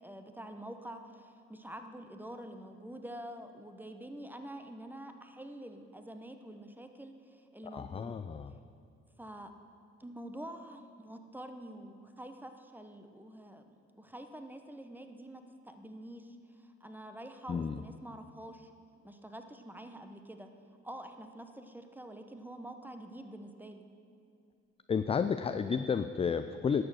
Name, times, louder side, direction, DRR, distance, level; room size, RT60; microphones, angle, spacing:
voice 1, 0.0-8.2 9.2-9.5 10.0-18.7 19.0-20.5 20.8-23.8, right 1 dB, 5° right, 7 dB, 0.9 m, -47 dB
voice 2, 7.6-8.5 17.5-17.8 24.9-26.8, left 6 dB, 20° left, 10 dB, 0.3 m, -32 dB
11.0 x 6.4 x 6.4 m, 2.5 s
supercardioid pair, 60°, 30 cm